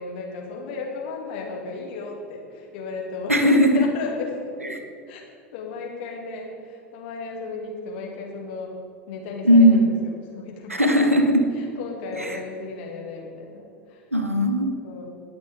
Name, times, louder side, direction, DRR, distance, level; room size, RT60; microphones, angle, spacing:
voice 1, 0.0-4.5 5.1-5.2 5.5-8.7 9.1-11.0 11.5-14.1 14.7-15.1, left 4 dB, 55° left, -1 dB, 2.3 m, -34 dB
voice 2, 3.3-3.7 4.7-4.8 9.4-9.8 10.7-11.4 12.2-12.4 14.1-14.7, equal, 85° right, 6 dB, 1.0 m, -18 dB
19.0 x 7.0 x 3.5 m, 2.3 s
figure-of-eight pair, 80°, 7 cm